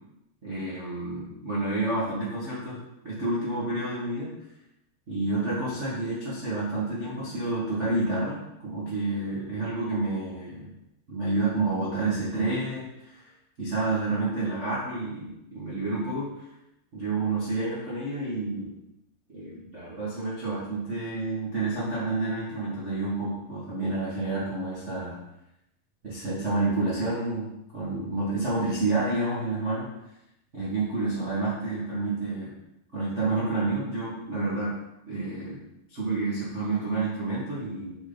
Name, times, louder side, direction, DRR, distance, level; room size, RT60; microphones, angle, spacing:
voice 1, 0.4-4.3 5.1-10.7 11.1-13.2 13.6-16.3 16.9-18.8 19.3-25.2 26.0-29.9 30.5-32.5 32.9-34.7 35.1-35.6 35.9-38.0, right 2 dB, 80° right, -8 dB, 0.6 m, -29 dB
6.3 x 6.0 x 4.0 m, 0.86 s
omnidirectional pair, 4.3 m